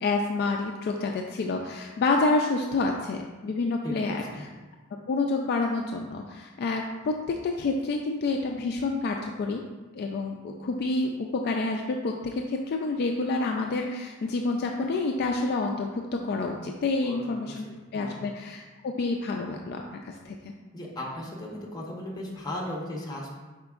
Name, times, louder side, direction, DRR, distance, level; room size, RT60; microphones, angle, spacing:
voice 1, 0.0-4.5 5.1-9.6 9.9-17.7 17.9-20.4, left 3 dB, 50° left, 2 dB, 0.3 m, -28 dB
voice 2, 3.8-4.4 17.0-17.3 17.9-18.2 20.7-23.3, left 1 dB, 20° left, -3 dB, 0.8 m, -36 dB
4.8 x 4.3 x 2.4 m, 1.3 s
head